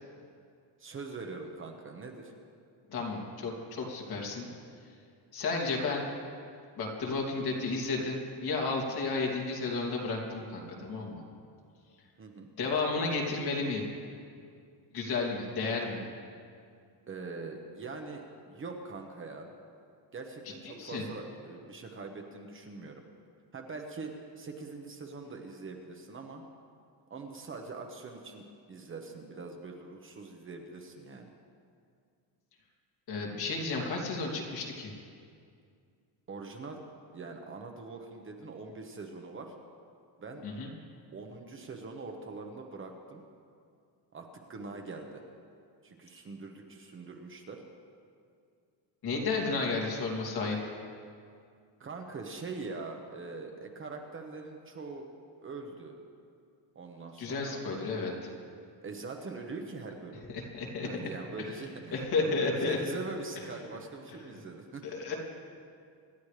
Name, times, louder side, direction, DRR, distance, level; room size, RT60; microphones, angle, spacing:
voice 1, 0.8-2.3 12.2-12.5 17.1-19.5 20.1-23.0 23.5-26.4 27.1-31.3 36.3-36.8 37.1-39.5 40.2-40.4 41.1-43.2 44.1-45.2 45.8-47.6 51.8-55.1 55.4-55.9 56.7-57.6 58.8-60.2 60.8-64.8 65.1-65.2, right 3 dB, 25° right, 3 dB, 1.1 m, -43 dB
voice 2, 2.9-4.5 5.3-6.1 6.8-11.2 12.6-13.8 14.9-16.0 20.6-21.0 33.1-34.9 40.4-40.7 49.0-50.6 57.2-58.3 60.3-60.9 61.9-62.8 64.8-65.1, left 3 dB, 55° left, -1 dB, 2.8 m, -32 dB
26.0 x 12.5 x 3.3 m, 2.3 s
cardioid pair, 165°, 45 cm